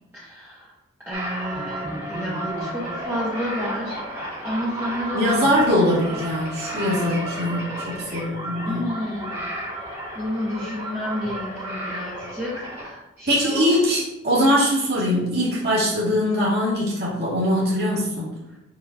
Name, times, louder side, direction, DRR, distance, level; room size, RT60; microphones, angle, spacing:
voice 1, 0.1-0.7 1.0-5.3 8.6-9.4 10.1-13.7 18.5-18.6, left 1 dB, 10° right, -9 dB, 1.2 m, -30 dB
sound 1, 1.1-12.9, right 1 dB, 30° right, 1.8 m, -32 dB
voice 2, 5.1-8.9 13.3-18.3, equal, 50° right, -7 dB, 2.3 m, -22 dB
6.5 x 5.6 x 2.7 m, 0.89 s
head